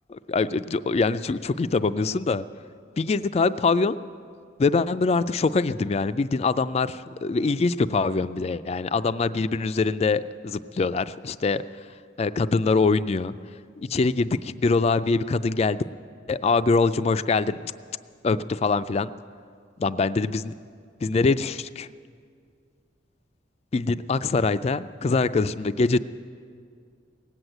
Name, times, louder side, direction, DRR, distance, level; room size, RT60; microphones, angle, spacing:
voice 1, 0.1-2.4 3.0-4.0 4.6-11.6 12.2-13.3 13.8-15.8 16.3-17.7 18.2-19.1 19.8-20.5 21.0-21.9 23.7-26.0, left 4 dB, 35° left, 13 dB, 0.3 m, -24 dB
18.0 x 8.0 x 9.0 m, 2.2 s
head